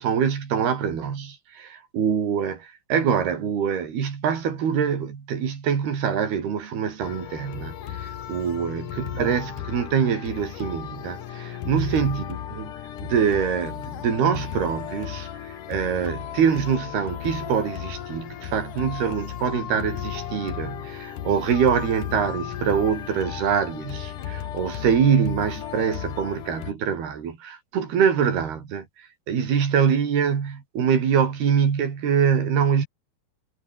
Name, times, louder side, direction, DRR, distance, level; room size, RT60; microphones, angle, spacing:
voice 1, 0.0-7.7 8.0-12.7 13.0-15.3 15.7-28.8 29.3-32.9, right 7 dB, 65° right, 5.8 m, -24 dB
sound 1, 7.0-26.7, left 10 dB, 55° left, 2.9 m, -35 dB
omnidirectional pair, 5.0 m